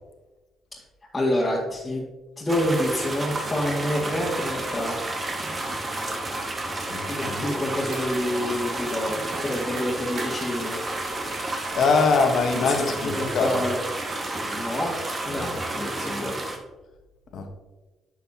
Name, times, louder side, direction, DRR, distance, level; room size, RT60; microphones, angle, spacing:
voice 1, 1.1-2.0 2.4-4.9 7.1-10.8 13.0-13.8 14.5-14.9 15.3-15.5 15.7-16.4, left 1 dB, 20° left, -6 dB, 2.0 m, -27 dB
sound 1, 2.5-16.6, right 2 dB, 35° right, 1.7 m, -31 dB
voice 2, 6.9-7.8 11.7-13.6 15.3-15.6 17.3-17.5, left 4 dB, 65° left, 5 dB, 1.3 m, -24 dB
sound 2, 7.9-8.5 8.8-9.0 9.3-10.3 11.0-11.3 11.6-11.8 12.1-12.5 13.2-13.3 13.7-13.9 14.2-14.3, right 2 dB, 65° right, 2.6 m, -40 dB
10.5 x 6.6 x 2.9 m, 1.2 s
supercardioid pair, 65°, 0 cm